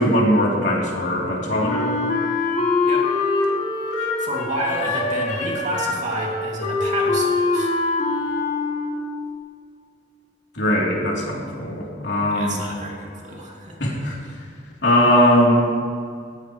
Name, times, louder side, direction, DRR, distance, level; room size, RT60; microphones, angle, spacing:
voice 1, 0.0-1.9 10.5-12.6 13.8-14.2 14.8-15.6, equal, 75° left, -3 dB, 3.3 m, -19 dB
Wind instrument woodwind instrument, 1.6-9.2, left 3 dB, 45° left, 2.2 m, -23 dB
voice 2, 3.9-7.7 12.3-13.8, right 1 dB, 45° right, -2 dB, 2.5 m, -30 dB
17.5 x 15.5 x 3.2 m, 2.2 s
head